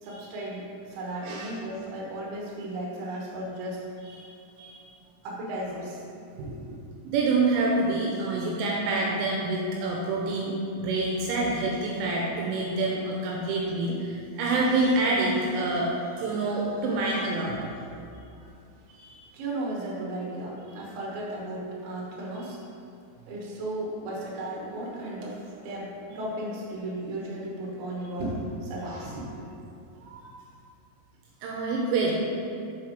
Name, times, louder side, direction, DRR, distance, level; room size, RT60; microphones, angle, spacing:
voice 1, 0.0-3.9 5.2-6.0 6.4-6.8 19.3-22.6 23.3-29.4, right 1 dB, 65° right, -4 dB, 2.6 m, -35 dB
voice 2, 1.2-1.5 4.1-4.8 7.1-15.9 16.2-17.6 18.9-19.2 28.8-29.1 30.0-30.3 31.4-32.1, right 2 dB, 85° right, -2 dB, 3.0 m, -27 dB
7.1 x 4.6 x 5.1 m, 2.6 s
omnidirectional pair, 5.8 m